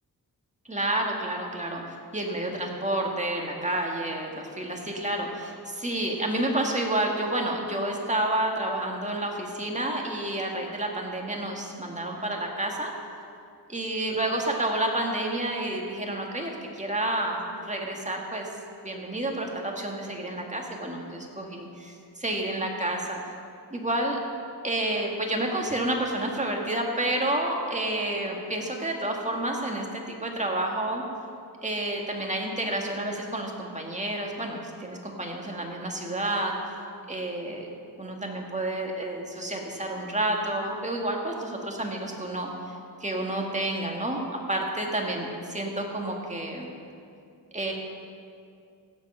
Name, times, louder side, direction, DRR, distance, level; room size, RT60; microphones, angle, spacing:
voice 1, 0.7-12.9 13.7-18.5 18.8-23.2 23.7-24.2 24.6-31.0 31.6-36.5 37.1-37.7 38.0-42.5 43.0-44.2 44.5-46.7 47.5-47.7, right 1 dB, 15° right, 0 dB, 1.9 m, -30 dB
16.5 x 7.5 x 5.6 m, 2.4 s
wide cardioid pair, 85°, 40 cm